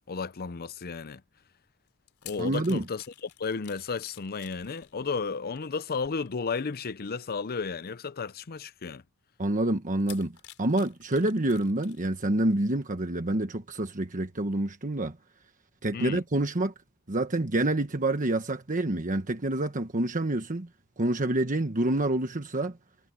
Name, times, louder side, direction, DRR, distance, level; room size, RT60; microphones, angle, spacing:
voice 1, 0.1-1.2 2.2-3.0 3.4-9.0 15.9-16.2, left 5 dB, 45° left, 0.6 m, -33 dB
sound 1, 1.9-6.7 7.4-7.6 8.6-8.7 10.0-12.1 12.5-12.6, left 13 dB, 70° left, 4.1 m, -51 dB
voice 2, 2.4-2.8 9.4-15.2 15.8-16.7 17.1-20.7 21.0-22.8, right 1 dB, 35° right, 1.3 m, -27 dB
head